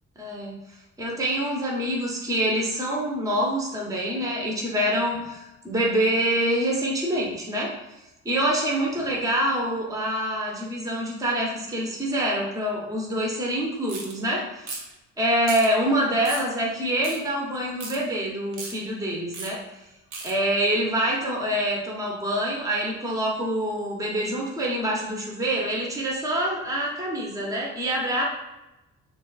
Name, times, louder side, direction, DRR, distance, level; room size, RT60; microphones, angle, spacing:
voice 1, 0.2-0.6 1.0-7.7 8.2-14.8 15.2-19.6 20.2-28.2, right 1 dB, 10° right, -2 dB, 0.6 m, -26 dB
sound 1, 13.9-14.1 14.6-14.9 15.4-15.7 16.2-16.5 17.0-17.2 17.8-18.0 18.5-18.7 19.3-19.5 20.1-20.3, right 4 dB, 85° right, 0.6 m, -35 dB
3.1 x 2.2 x 2.3 m, 0.98 s
cardioid pair, 90°, 30 cm